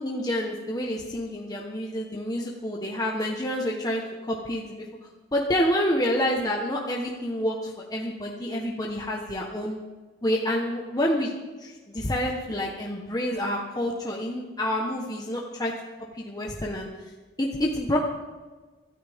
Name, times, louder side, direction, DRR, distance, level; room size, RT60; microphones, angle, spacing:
voice 1, 0.0-4.9 5.3-9.8 10.2-11.3 11.6-15.7 16.1-16.9 17.4-18.0, left 1 dB, 20° left, -1 dB, 1.2 m, -28 dB
24.5 x 13.5 x 3.6 m, 1.3 s
head